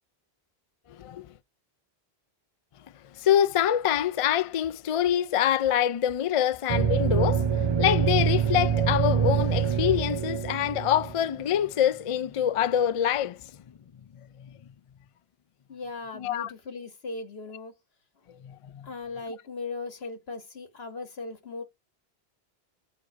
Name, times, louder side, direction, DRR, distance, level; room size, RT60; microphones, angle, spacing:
voice 1, 3.2-7.4 7.8-13.4 16.1-16.5 18.4-18.9, left 10 dB, 55° left, 0.3 m, -25 dB
sound 1, 6.7-11.5, right 7 dB, 40° right, 0.4 m, -25 dB
voice 2, 15.7-17.7 18.8-21.6, left 3 dB, 75° left, 1.7 m, -38 dB
7.5 x 3.1 x 4.6 m
omnidirectional pair, 1.0 m